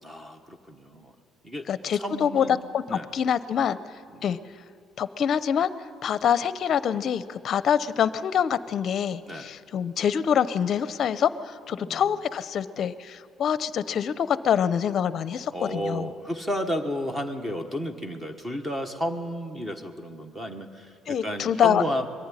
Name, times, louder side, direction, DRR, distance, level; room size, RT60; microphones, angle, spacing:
voice 1, 0.0-1.1 1.4-2.6 2.9-3.1 4.1-4.3 9.3-9.5 11.8-12.1 15.5-22.1, equal, 10° right, 7 dB, 1.4 m, -32 dB
voice 2, 1.7-2.5 2.7-3.8 4.2-4.4 5.0-5.7 6.0-16.1 21.1-21.8, left 8 dB, 45° left, 14 dB, 0.7 m, -25 dB
22.0 x 14.5 x 9.8 m, 2.6 s
cardioid pair, 145°, 0 cm